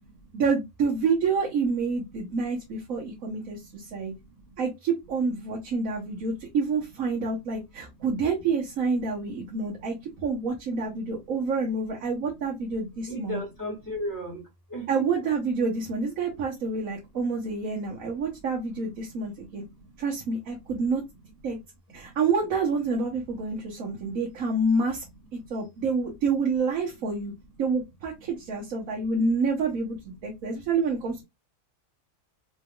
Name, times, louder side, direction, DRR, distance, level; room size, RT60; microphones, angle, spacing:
voice 1, 0.3-4.1 4.6-13.4 14.9-19.6 20.0-21.0 21.4-21.6 21.9-25.0 25.5-27.3 27.6-31.2, right 4 dB, 80° right, 1.4 m, -28 dB
voice 2, 13.1-14.4 14.7-15.0 19.4-20.0 22.0-22.1, left 1 dB, 15° left, 1.8 m, -36 dB
4.2 x 3.3 x 2.3 m
omnidirectional pair, 1.4 m